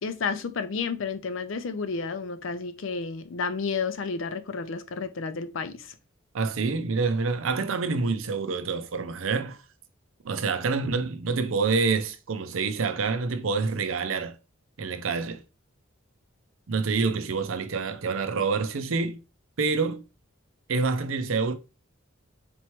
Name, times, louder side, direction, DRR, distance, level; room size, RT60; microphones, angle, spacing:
voice 1, 0.0-5.9, left 5 dB, 70° left, 0.5 m, -31 dB
voice 2, 6.3-9.6 10.2-14.4 14.8-15.4 16.7-19.2 19.6-20.0 20.7-21.5, right 4 dB, 80° right, 0.5 m, -27 dB
4.4 x 3.0 x 3.0 m
head